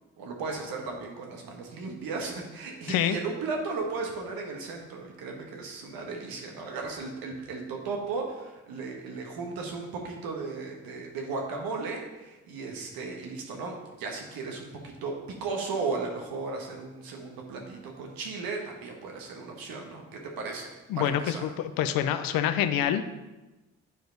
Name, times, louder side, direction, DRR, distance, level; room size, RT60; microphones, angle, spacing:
voice 1, 0.2-21.4, right 4 dB, 75° right, 1 dB, 1.5 m, -35 dB
voice 2, 20.9-21.5 21.8-23.1, left 10 dB, 75° left, 10 dB, 0.6 m, -26 dB
9.6 x 4.8 x 3.9 m, 1.1 s
hypercardioid pair, 50°, 35 cm